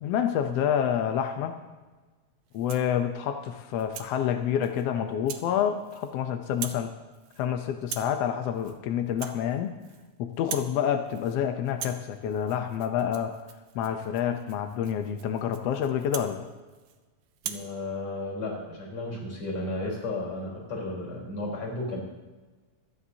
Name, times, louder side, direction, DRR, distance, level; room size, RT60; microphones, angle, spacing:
voice 1, 0.0-1.6 2.5-6.9 7.4-9.7 10.2-13.4 13.7-16.4, left 9 dB, 75° left, 6 dB, 1.5 m, -28 dB
Rattle (instrument), 2.5-2.9 3.4-4.1 4.6-4.8 5.3-5.5 5.8-6.2 6.5-6.9 7.1-7.5 7.8-8.2 8.5-8.8 9.1-10.1 10.3-10.8 11.1-11.4 11.7-17.0 17.3-17.7, right 9 dB, 70° right, 1.9 m, -41 dB
voice 2, 17.4-22.0, left 2 dB, 45° left, -2 dB, 4.9 m, -33 dB
26.0 x 9.7 x 2.8 m, 1.3 s
omnidirectional pair, 3.6 m